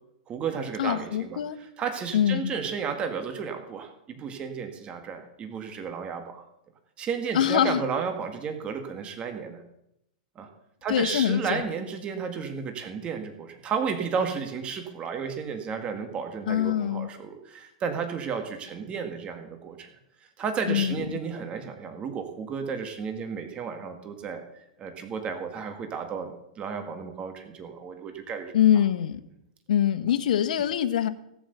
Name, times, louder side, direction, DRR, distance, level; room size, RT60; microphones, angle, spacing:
voice 1, 0.3-6.4 7.0-9.6 10.4-10.5 10.8-19.9 20.4-24.4 24.8-28.5, right 6 dB, 25° right, 5 dB, 1.9 m, -33 dB
voice 2, 0.8-1.6 2.1-2.5 7.3-7.8 10.9-11.6 16.5-17.1 20.7-21.0 28.5-29.2 29.7-31.1, left 10 dB, 75° left, 10 dB, 1.2 m, -24 dB
16.5 x 7.9 x 6.8 m, 0.81 s
hypercardioid pair, 130°, 4 cm